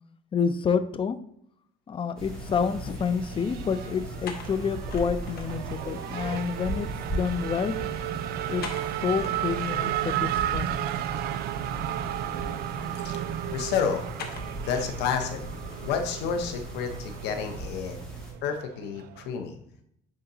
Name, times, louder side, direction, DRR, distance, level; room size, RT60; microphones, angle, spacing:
voice 1, 0.3-1.2 1.9-7.8 8.5-8.7 9.0-10.9, left 6 dB, 30° left, 12 dB, 0.5 m, -28 dB
sound 1, 2.2-17.0, left 5 dB, 65° left, 1.1 m, -47 dB
sound 2, 2.2-18.3, right 2 dB, 5° left, 1.8 m, -38 dB
Race car auto racing / Accelerating revving vroom, 2.3-19.3, right 12 dB, 70° right, 0.4 m, -34 dB
voice 2, 13.5-14.1 14.6-15.4 15.8-18.0 18.4-19.6, left 6 dB, 85° left, 6 dB, 0.8 m, -30 dB
9.8 x 3.8 x 2.7 m, 0.72 s
cardioid pair, 110°, 17 cm